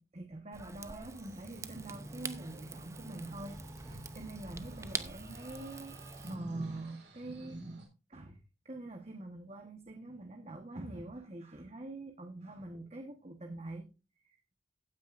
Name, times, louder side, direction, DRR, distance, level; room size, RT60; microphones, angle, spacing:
voice 1, 0.0-8.4 8.6-13.9 14.2-14.4, right 2 dB, 35° right, 4 dB, 1.3 m, -45 dB
Rain / Fire, 0.5-6.4, right 3 dB, 15° right, 0.7 m, -44 dB
sound 1, 1.0-7.8, right 3 dB, 60° right, 3.7 m, -59 dB
16.0 x 9.3 x 2.6 m, 0.30 s
head